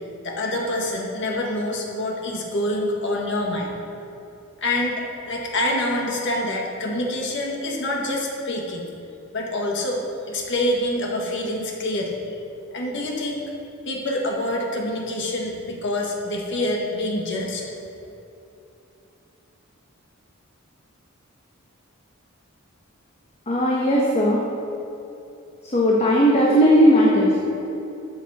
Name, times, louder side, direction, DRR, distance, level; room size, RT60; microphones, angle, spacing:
voice 1, 0.2-3.7 4.6-8.9 9.3-12.2 12.7-13.4 13.9-17.6, left 1 dB, 60° left, -1 dB, 1.7 m, -26 dB
voice 2, 23.5-24.4 25.7-27.4, equal, 30° left, -4 dB, 1.2 m, -17 dB
13.0 x 7.3 x 4.3 m, 2.8 s
head